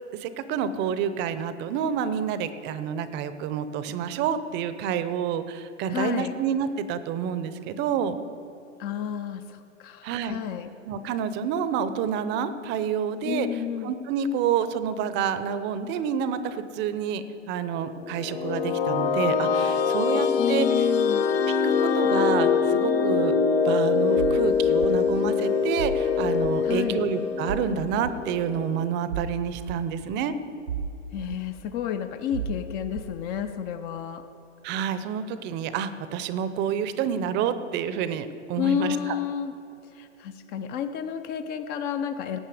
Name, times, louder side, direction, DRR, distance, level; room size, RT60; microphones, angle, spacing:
voice 1, 0.1-8.2 10.0-10.4 10.9-13.5 13.8-20.7 21.6-23.3 23.6-30.3 34.6-39.2, right 8 dB, 30° right, 12 dB, 0.7 m, -28 dB
voice 2, 5.9-6.4 8.8-10.7 13.2-13.9 20.4-21.3 26.6-27.0 31.1-34.2 38.6-39.5 39.9-42.4, left 9 dB, 25° left, 9 dB, 0.5 m, -31 dB
sound 1, 18.0-28.8, left 6 dB, 50° left, 1.2 m, -24 dB
sound 2, 24.2-24.4 24.8-24.9 25.8-26.0 26.4-26.6 27.5-27.7 28.0-28.1 29.1-29.3 29.7-29.8 30.7-30.9 31.3-31.4 32.3-32.6 32.9-33.1, right 7 dB, 85° right, 1.1 m, -32 dB
17.5 x 8.8 x 5.0 m, 2.7 s
hypercardioid pair, 115°, 37 cm